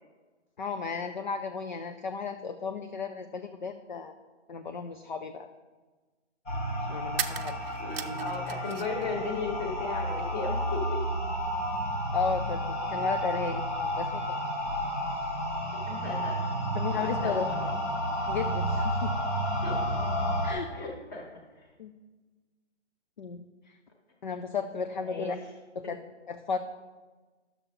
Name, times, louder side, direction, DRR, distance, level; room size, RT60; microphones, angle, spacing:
voice 1, 0.6-4.1 4.5-5.5 6.9-7.6 12.1-14.4 16.7-17.7 18.3-19.2 20.4-20.7 21.8-21.9 23.2-23.8 24.2-25.4 25.8-26.0 26.3-26.6, left 5 dB, 45° left, 7 dB, 0.4 m, -34 dB
sound 1, 4.8-4.9 7.1-9.1 9.3-10.2, right 8 dB, 55° right, 0.6 m, -38 dB
sound 2, 6.5-20.5, equal, 90° left, 2.9 m, -31 dB
voice 2, 7.8-11.0 12.9-13.0 15.9-16.5 16.9-17.4 19.6-20.0 20.7-21.7 25.0-25.5, left 3 dB, 15° left, 1 dB, 1.2 m, -36 dB
10.5 x 6.9 x 3.6 m, 1.3 s
hypercardioid pair, 160°, 36 cm